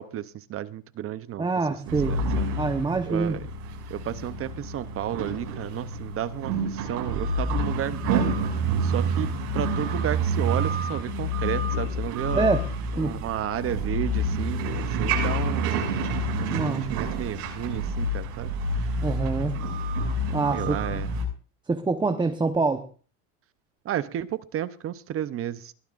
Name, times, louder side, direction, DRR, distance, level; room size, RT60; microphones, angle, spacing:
voice 1, 0.0-1.5 2.1-2.5 3.1-3.4 3.9-12.5 13.0-16.1 16.4-18.9 20.5-21.1 23.8-25.7, right 11 dB, 30° right, 0.7 m, -32 dB
voice 2, 1.4-2.2 2.6-3.4 12.3-12.7 13.0-13.2 16.5-17.0 19.0-19.6 20.3-21.0 21.7-22.9, right 3 dB, 10° right, 1.0 m, -26 dB
sound 1, 1.9-21.2, right 1 dB, 90° right, 6.7 m, -28 dB
22.0 x 14.5 x 2.5 m
supercardioid pair, 120°, 45 cm